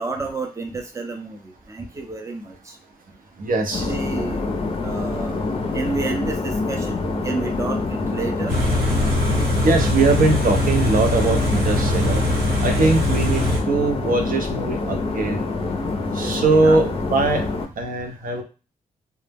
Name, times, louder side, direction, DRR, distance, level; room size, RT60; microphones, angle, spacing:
voice 1, 0.0-2.8 3.6-4.5 4.8-5.4 5.7-8.5 12.7-13.3 16.1-16.8, right 3 dB, 20° right, 3 dB, 0.5 m, -31 dB
voice 2, 3.4-3.9 9.6-12.2 12.6-15.4 16.1-17.4 17.8-18.4, right 3 dB, 65° right, 4 dB, 0.6 m, -21 dB
sound 1, 3.7-17.7, left 3 dB, 40° left, 0.4 m, -26 dB
Car / Idling, 8.5-13.6, left 1 dB, 85° right, 1.0 m, -22 dB
2.1 x 2.0 x 3.3 m, 0.32 s
wide cardioid pair, 115°, 16 cm